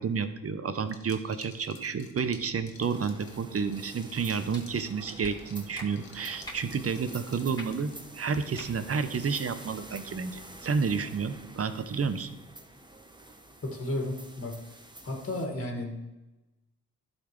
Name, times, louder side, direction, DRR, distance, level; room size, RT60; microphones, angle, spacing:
voice 1, 0.0-12.3, right 5 dB, 40° right, 12 dB, 0.7 m, -30 dB
Liquid, 0.8-8.2, left 5 dB, 70° left, 1.1 m, -54 dB
sound 1, 2.8-15.5, right 2 dB, 10° right, 0.9 m, -48 dB
sound 2, 4.5-4.6 5.2-5.3 5.7-5.9 6.4-6.6 7.5-7.7 8.5-8.7 9.1-9.2, equal, 10° left, 2.6 m, -42 dB
voice 2, 13.6-14.6 15.0-16.0, left 1 dB, 40° left, 2 dB, 1.9 m, -33 dB
11.5 x 4.1 x 3.2 m, 1.0 s
supercardioid pair, 40°, 36 cm